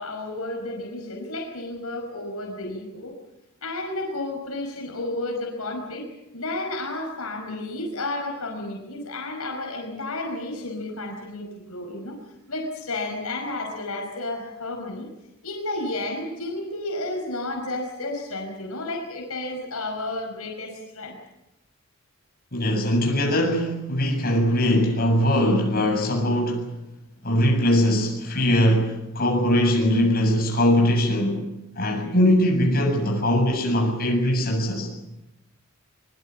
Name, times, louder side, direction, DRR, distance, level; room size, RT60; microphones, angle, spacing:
voice 1, 0.0-3.1 3.6-6.1 6.3-12.2 12.5-15.1 15.4-21.2, left 2 dB, 75° left, 2 dB, 5.2 m, -32 dB
voice 2, 22.5-26.7 27.2-31.5 31.8-34.9, equal, 45° left, 1 dB, 7.6 m, -21 dB
23.5 x 23.0 x 7.7 m, 0.91 s
head